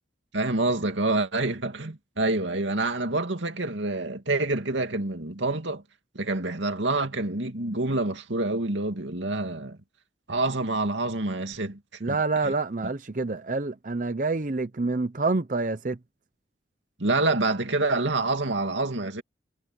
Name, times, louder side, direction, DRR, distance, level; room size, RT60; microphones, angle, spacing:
voice 1, 0.3-5.8 6.1-9.8 10.3-11.8 12.1-12.2 12.4-12.5 17.0-19.2, right 2 dB, 90° right, 2.5 m, -27 dB
voice 2, 12.0-16.0, right 3 dB, 45° right, 0.7 m, -27 dB
head